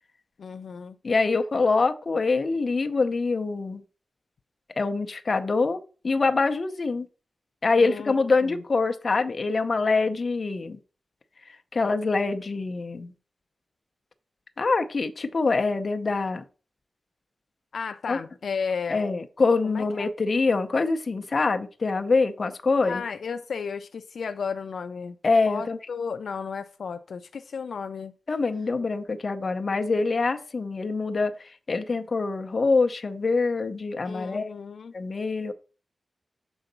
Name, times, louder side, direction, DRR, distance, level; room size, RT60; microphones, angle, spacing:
voice 1, 0.4-1.0 7.8-8.2 8.4-8.6 17.7-19.0 19.6-20.1 22.8-25.2 25.5-28.1 34.1-34.9, left 5 dB, 80° left, 0.4 m, -33 dB
voice 2, 1.0-3.8 4.8-5.8 6.0-7.1 7.6-10.8 11.7-13.1 14.6-16.4 18.1-18.2 18.9-23.0 25.2-25.8 28.3-34.5 34.9-35.5, left 3 dB, 40° left, 0.6 m, -25 dB
7.0 x 3.9 x 5.3 m
wide cardioid pair, 170°, 0 cm